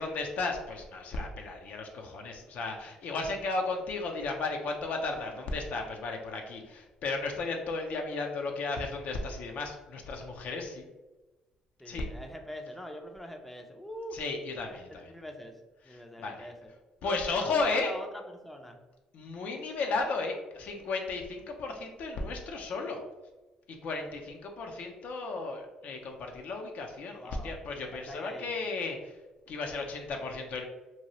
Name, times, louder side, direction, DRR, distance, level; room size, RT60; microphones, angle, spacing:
voice 1, 0.0-10.8 11.9-12.1 14.1-15.1 15.9-16.5 17.0-17.9 19.1-23.0 23.8-29.0 29.5-30.6, left 3 dB, 65° left, 3 dB, 0.5 m, -34 dB
voice 2, 11.8-14.2 14.7-15.6 15.8-16.7 17.0-18.8 27.1-27.6 27.9-28.5, equal, 5° left, 3 dB, 0.4 m, -43 dB
2.8 x 2.3 x 2.9 m, 1.1 s
supercardioid pair, 65°, 3 cm